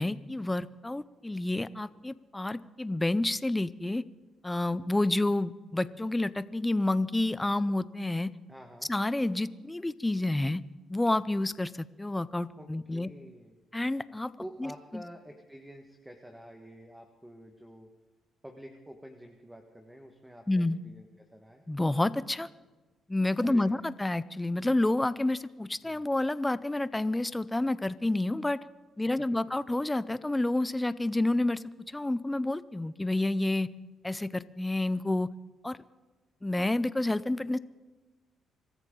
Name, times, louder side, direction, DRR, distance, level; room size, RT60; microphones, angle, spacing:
voice 1, 0.0-4.0 4.4-8.3 8.9-10.6 10.9-13.1 13.7-14.3 14.6-15.0 20.5-20.8 21.7-22.5 23.1-28.6 29.0-33.7 34.0-35.3 35.6-35.8 36.4-37.6, left 2 dB, 10° left, 16 dB, 0.6 m, -29 dB
voice 2, 8.5-8.9 12.6-13.6 14.4-17.9 18.4-21.6 23.4-23.8 25.8-26.0, equal, 5° right, 3 dB, 1.5 m, -48 dB
25.0 x 14.0 x 3.8 m, 1.2 s
cardioid pair, 90°, 0 cm